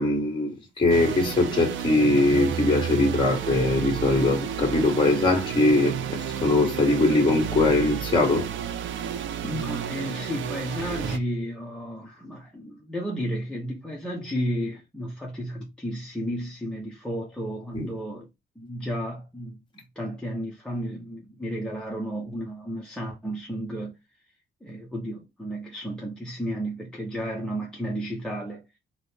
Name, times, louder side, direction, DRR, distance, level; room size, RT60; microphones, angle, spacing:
voice 1, 0.0-8.5 17.7-17.9, left 2 dB, 25° left, 1.3 m, -22 dB
sound 1, 0.9-11.2, right 9 dB, 80° right, 0.5 m, -31 dB
voice 2, 9.4-18.3 18.6-19.6 20.0-24.0 24.6-28.6, equal, 5° left, 0.6 m, -32 dB
4.1 x 2.1 x 3.3 m
cardioid pair, 155°, 20 cm